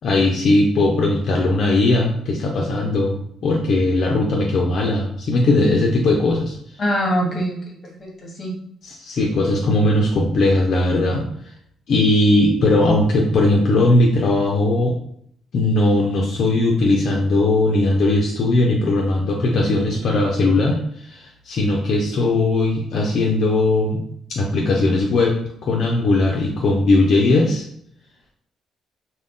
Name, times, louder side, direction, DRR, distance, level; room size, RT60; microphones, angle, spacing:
voice 1, 0.0-6.6 8.8-11.2 11.9-14.9 15.5-20.8 21.0-24.0 24.4-27.6, left 2 dB, 60° left, -1 dB, 0.5 m, -18 dB
voice 2, 6.8-8.5, equal, 35° left, 0 dB, 0.9 m, -24 dB
2.4 x 2.1 x 3.6 m, 0.68 s
cardioid pair, 90°, 0 cm